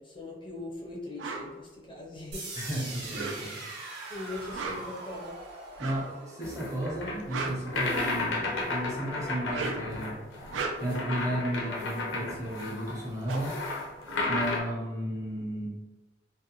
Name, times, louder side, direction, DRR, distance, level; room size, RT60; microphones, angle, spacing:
voice 1, 0.0-2.5 4.1-5.4, left 2 dB, 25° left, -2 dB, 0.4 m, -41 dB
sound 1, 1.2-1.5 3.0-3.7 4.4-5.0 5.8-6.1 7.0-8.3 9.3-10.0 10.4-11.1 12.6-12.7 12.9-14.6, right 4 dB, 85° right, 0.4 m, -37 dB
sound 2, 2.3-8.2, right 2 dB, 65° right, 0.7 m, -43 dB
voice 2, 2.5-3.6 5.8-10.2 10.8-13.6 14.3-15.7, right 1 dB, 15° right, -3 dB, 0.6 m, -34 dB
sound 3, 6.4-14.6, left 2 dB, 90° left, 0.6 m, -33 dB
2.5 x 2.1 x 2.7 m, 1.1 s
head